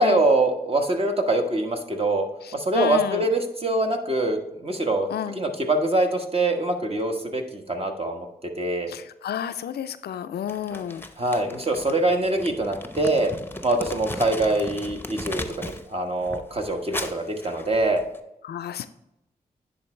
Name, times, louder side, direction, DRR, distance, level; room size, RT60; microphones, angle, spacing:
voice 1, 0.0-2.3 2.5-5.1 5.3-8.3 8.5-8.9 11.2-13.3 13.6-18.0, right 2 dB, 35° right, 3 dB, 1.2 m, -24 dB
voice 2, 2.4-3.3 5.1-5.4 8.9-11.0 18.4-18.9, left 9 dB, 80° left, 11 dB, 0.4 m, -31 dB
Crumpling crinkling, 10.5-15.9 16.2-18.2, left 2 dB, 15° left, 0.7 m, -37 dB
10.0 x 3.9 x 3.3 m, 0.86 s
cardioid pair, 50°, 16 cm